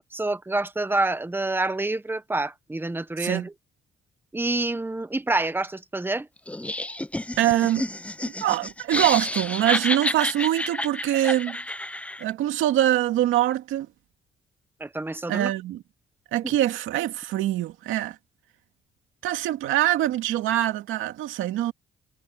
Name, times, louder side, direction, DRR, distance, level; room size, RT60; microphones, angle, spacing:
voice 1, 0.1-3.5 4.3-6.3 14.8-15.5 16.4-16.6, right 2 dB, 10° right, 1.2 m, -27 dB
Laughter, 6.5-12.3, left 1 dB, 5° left, 0.6 m, -30 dB
voice 2, 7.4-7.9 8.4-11.6 12.2-13.9 15.3-15.8 16.3-18.2 19.2-21.7, right 13 dB, 90° right, 2.3 m, -24 dB
cardioid pair, 90°, 20 cm